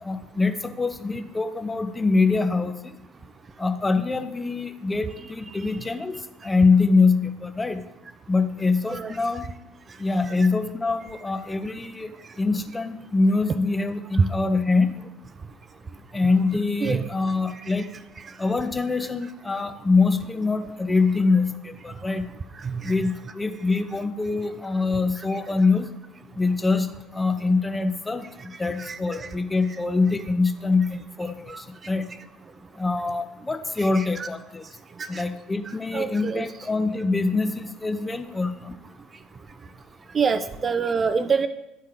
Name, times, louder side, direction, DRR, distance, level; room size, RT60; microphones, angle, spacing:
voice 1, 0.0-2.9 3.6-6.2 6.4-7.8 8.3-9.5 10.0-14.9 16.1-17.9 18.4-22.3 22.8-25.9 26.4-28.3 28.6-32.1 32.8-34.6 35.1-38.8, left 3 dB, 15° left, 8 dB, 0.6 m, -24 dB
voice 2, 22.6-22.9 25.3-25.6 28.8-29.3 31.5-31.6 33.8-34.3 35.0-35.2 35.9-36.4 40.1-41.5, right 5 dB, 30° right, 11 dB, 0.4 m, -26 dB
10.5 x 4.2 x 3.7 m, 0.94 s
figure-of-eight pair, 60°, 0 cm